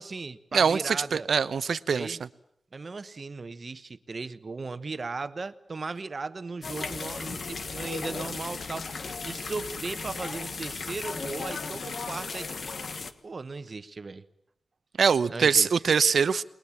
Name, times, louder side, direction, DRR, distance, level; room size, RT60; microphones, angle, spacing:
voice 1, 0.0-1.3 1.9-2.3 2.7-8.9 9.2-12.5 13.2-14.2 15.3-15.7, right 4 dB, 40° right, 1.1 m, -37 dB
voice 2, 0.5-2.2 15.0-16.4, right 6 dB, 85° right, 0.9 m, -23 dB
sound 1, 6.6-13.1, left 4 dB, 60° left, 1.5 m, -36 dB
29.5 x 21.0 x 7.3 m
wide cardioid pair, 150°, 0 cm